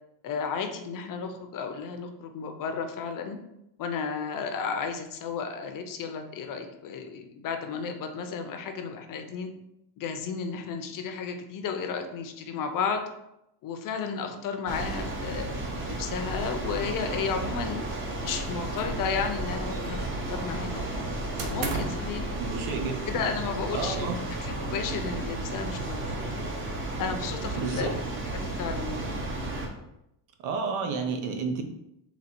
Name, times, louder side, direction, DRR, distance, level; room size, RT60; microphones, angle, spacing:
voice 1, 0.2-3.4 3.8-9.5 10.0-13.0 13.6-15.5 15.9-17.8 18.2-20.8 21.4-22.3 23.1-24.1 24.4-26.1 27.0-27.9 28.3-29.2, left 6 dB, 45° left, 6 dB, 0.5 m, -33 dB
sound 1, 14.7-29.7, right 2 dB, 25° right, 0.7 m, -33 dB
sound 2, 18.3-19.0 19.3-20.2 21.4-22.1, right 4 dB, 60° right, 0.8 m, -36 dB
voice 2, 22.4-23.2 23.7-24.2 27.5-27.9 30.4-31.6, right 5 dB, 85° right, 5 dB, 0.9 m, -31 dB
4.1 x 2.9 x 4.3 m, 0.84 s
cardioid pair, 160°, 47 cm